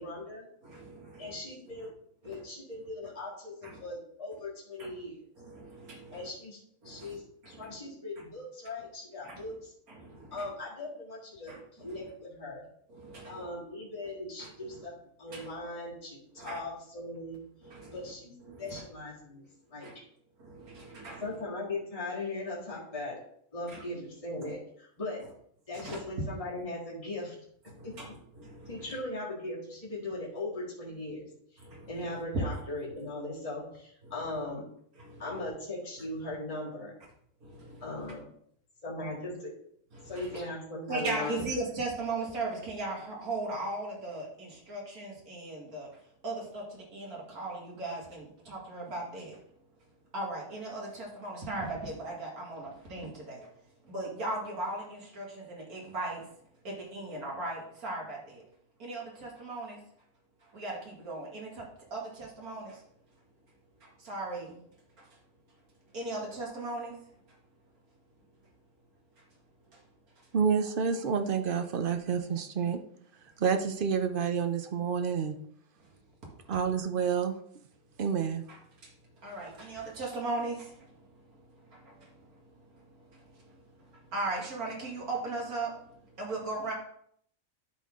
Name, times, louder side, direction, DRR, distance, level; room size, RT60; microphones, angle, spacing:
voice 1, 0.0-0.4 1.2-1.9 2.2-5.2 6.1-6.6 6.8-9.7 10.3-12.6 13.2-14.9 15.2-17.4 17.9-18.3 18.6-19.4 19.7-19.9 21.2-23.2 23.5-25.2 25.7-27.3 27.8-27.9 28.7-31.6 31.9-34.6 35.2-36.9 37.8-38.2 38.8-39.5 40.0-41.4, left 2 dB, 25° left, -6 dB, 2.0 m, -39 dB
voice 2, 0.6-1.4 1.7-1.9 2.2-2.4 3.6-3.8 4.8-4.9 5.4-6.3 6.8-7.8 9.2-9.6 9.9-10.5 11.5-12.1 12.9-13.5 14.4-14.9 15.3-15.5 16.4-16.6 17.6-18.1 18.4-18.8 19.8-19.9 20.4-21.4 23.7-23.8 25.2-25.3 25.7-26.0 27.7-29.0 31.6-32.2 32.9-33.0 34.0-34.4 35.0-35.5 36.2-36.3 37.4-38.1 39.9-40.5 40.9-49.4 50.1-56.3 56.6-58.4 58.8-59.8 60.4-62.8 63.8-64.6 65.0-65.2 65.5-65.6 65.9-67.0 67.3-67.4 69.2-69.3 69.7-69.8 70.2-70.3 75.8-75.9 76.2-76.6 78.5-86.7, right 2 dB, 80° right, -3 dB, 2.5 m, -39 dB
voice 3, 70.3-72.8 73.4-75.4 76.5-77.4 78.0-78.4, right 6 dB, 50° right, 7 dB, 0.6 m, -28 dB
12.0 x 4.2 x 3.6 m, 0.67 s
omnidirectional pair, 1.5 m